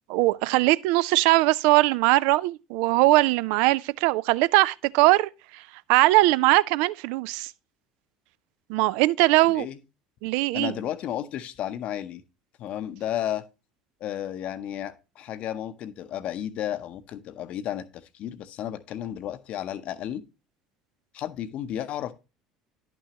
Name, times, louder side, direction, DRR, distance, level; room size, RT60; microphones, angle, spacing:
voice 1, 0.1-5.6 5.9-7.5 8.7-9.7 10.2-10.7, right 19 dB, 65° right, 0.3 m, -21 dB
voice 2, 10.5-12.2 12.6-13.4 14.0-20.2 21.1-22.1, left 11 dB, 55° left, 0.7 m, -33 dB
11.0 x 6.0 x 2.8 m
hypercardioid pair, 65°, 3 cm